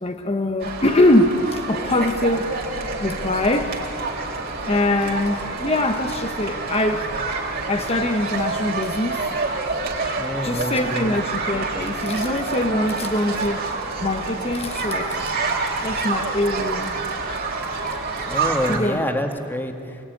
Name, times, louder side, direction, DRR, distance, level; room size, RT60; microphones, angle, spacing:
voice 1, 0.0-2.5 3.0-3.8 4.7-7.1 7.7-9.3 10.4-13.7 14.0-15.3 15.8-17.0 17.7-18.0 18.7-19.0, left 1 dB, 25° left, 5 dB, 1.1 m, -23 dB
sound 1, 0.6-18.8, right 3 dB, 45° right, 4.0 m, -28 dB
voice 2, 10.2-11.1 18.3-20.0, left 1 dB, 10° left, 5 dB, 2.0 m, -27 dB
29.0 x 20.5 x 9.6 m, 2.5 s
head